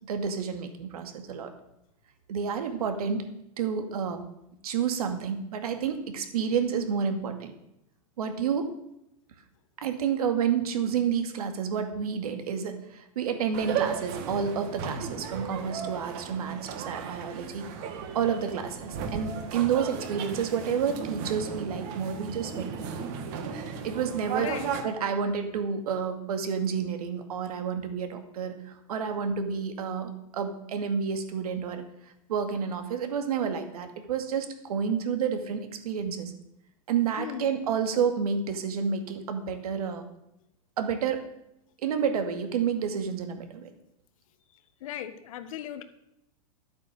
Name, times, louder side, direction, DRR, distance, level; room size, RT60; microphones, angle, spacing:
voice 1, 0.0-1.5 2.3-4.2 4.6-7.5 8.2-8.7 9.8-17.7 18.1-23.1 23.8-24.5 24.8-31.8 32.3-36.3 36.9-40.0 40.8-41.2 41.8-43.7, right 7 dB, 85° right, 6 dB, 2.2 m, -30 dB
sound 1, 13.5-24.8, right 7 dB, 40° right, 1.7 m, -35 dB
voice 2, 24.4-24.7 37.2-37.6 44.5-45.8, left 10 dB, 65° left, 10 dB, 1.4 m, -38 dB
12.0 x 8.5 x 6.5 m, 0.82 s
supercardioid pair, 160°, 19 cm